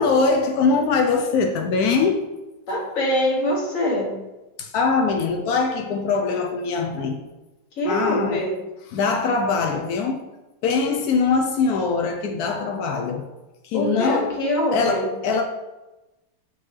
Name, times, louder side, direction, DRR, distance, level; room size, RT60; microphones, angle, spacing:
voice 1, 0.0-2.2 4.6-7.2 7.8-8.4 8.9-10.2 10.6-13.2 13.6-14.3 14.7-15.4, left 4 dB, 80° left, 0.8 m, -22 dB
voice 2, 2.7-4.1 7.8-8.5 13.7-15.1, left 1 dB, 45° left, 1.4 m, -24 dB
8.5 x 3.8 x 3.2 m
omnidirectional pair, 2.4 m